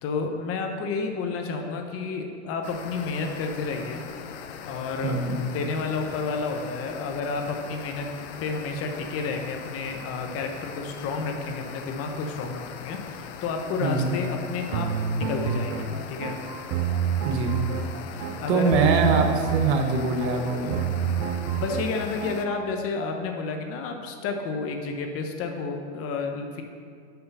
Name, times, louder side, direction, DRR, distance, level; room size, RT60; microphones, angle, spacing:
voice 1, 0.0-4.0 4.6-5.2 5.5-8.1 8.4-14.9 15.1-16.4 18.3-18.7 21.5-26.6, left 4 dB, 40° left, 4 dB, 1.0 m, -30 dB
sound 1, 2.6-22.5, left 7 dB, 75° left, 0.7 m, -41 dB
voice 2, 5.0-5.4 13.8-14.2 17.2-17.6 18.5-20.8, right 4 dB, 70° right, 4 dB, 1.2 m, -23 dB
sound 2, 14.7-22.6, right 8 dB, 50° right, 0.6 m, -29 dB
5.9 x 5.5 x 6.9 m, 2.2 s
hypercardioid pair, 115°, 35 cm